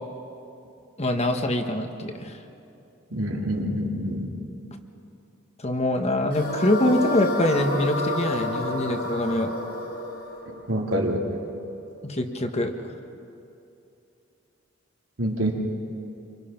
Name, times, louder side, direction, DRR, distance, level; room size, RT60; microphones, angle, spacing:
voice 1, 1.0-2.4 5.6-9.5 12.0-12.7, left 1 dB, 35° left, 5 dB, 1.4 m, -24 dB
voice 2, 3.1-4.3 10.7-11.2 15.2-15.5, equal, 80° right, -1 dB, 3.0 m, -26 dB
sound 1, 6.3-11.5, left 1 dB, 60° left, 4.3 m, -30 dB
26.5 x 24.5 x 5.9 m, 2.7 s
head